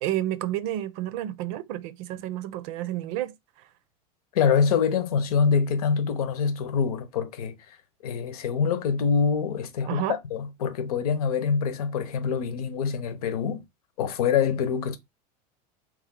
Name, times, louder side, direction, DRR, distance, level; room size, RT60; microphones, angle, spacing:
voice 1, 0.0-3.3 9.9-10.2, right 13 dB, 65° right, 0.6 m, -30 dB
voice 2, 4.3-7.8 8.0-13.6 14.0-15.0, left 6 dB, 85° left, 0.9 m, -25 dB
3.2 x 3.2 x 3.6 m
supercardioid pair, 110°, 19 cm